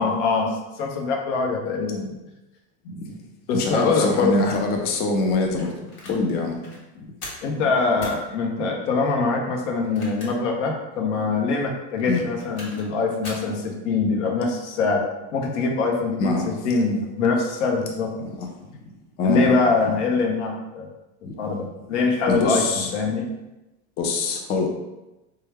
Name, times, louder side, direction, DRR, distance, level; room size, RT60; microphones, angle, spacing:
voice 1, 0.0-2.1 2.8-3.0 3.5-4.4 7.4-15.0 15.3-18.1 19.2-20.9 21.4-23.3, left 4 dB, 80° left, 1 dB, 0.8 m, -23 dB
voice 2, 3.5-5.7 6.1-6.5 12.1-12.2 16.2-16.5 18.2-18.5 19.2-19.5 22.3-22.9 24.0-24.7, left 3 dB, 30° left, 2 dB, 0.4 m, -24 dB
sound 1, 5.6-6.2 6.6-6.8 7.2-7.5 8.0-8.2 9.8-10.5 10.9-11.0 12.1-12.9 13.2-13.5, left 1 dB, 45° left, 1.1 m, -39 dB
3.1 x 2.2 x 3.3 m, 1.0 s
supercardioid pair, 130°, 35 cm